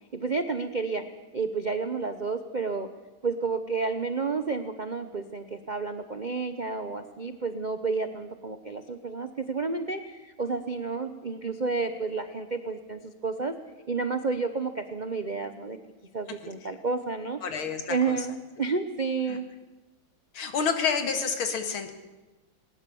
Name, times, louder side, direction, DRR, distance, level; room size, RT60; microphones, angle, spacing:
voice 1, 0.1-1.0 1.3-2.9 3.2-13.6 13.9-15.8 16.1-17.4 17.9-19.4, right 4 dB, 65° right, 9 dB, 0.4 m, -30 dB
voice 2, 17.4-18.3 19.3-19.4 20.3-21.9, left 6 dB, 75° left, 7 dB, 2.5 m, -29 dB
19.5 x 19.5 x 7.0 m, 1.2 s
omnidirectional pair, 2.3 m